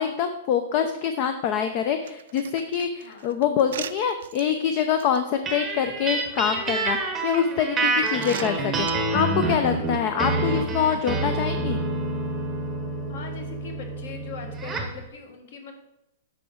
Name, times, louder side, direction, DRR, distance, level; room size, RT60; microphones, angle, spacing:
voice 1, 0.0-11.8, left 8 dB, 30° left, 8 dB, 0.4 m, -25 dB
Door lock, 2.1-4.4 5.0-5.2 6.0-6.5 7.2-7.3 8.1-8.9, right 9 dB, 65° right, 0.5 m, -38 dB
voice 2, 3.0-3.4 7.7-8.1 13.1-15.7, left 5 dB, 55° left, 5 dB, 1.6 m, -41 dB
sound 1, 5.5-15.0, right 2 dB, 10° right, 0.9 m, -27 dB
9.1 x 5.8 x 3.8 m, 0.89 s
supercardioid pair, 180°, 0 cm